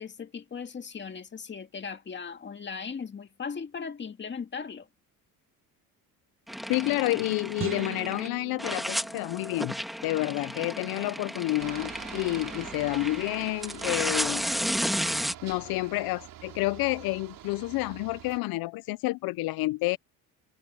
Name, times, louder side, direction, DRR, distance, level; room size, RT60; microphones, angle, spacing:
voice 1, 0.0-4.9, left 6 dB, 30° left, 2.2 m, -38 dB
sound 1, 6.5-8.3 8.6-15.3, equal, ahead, 2.2 m, -33 dB
voice 2, 6.7-9.7 10.0-14.4 15.4-20.0, left 20 dB, 75° left, 0.6 m, -29 dB
sound 2, 7.6-9.9, right 10 dB, 35° right, 0.7 m, -40 dB
Aircraft, 11.6-18.4, right 12 dB, 65° right, 4.4 m, -45 dB
cardioid pair, 110°, 36 cm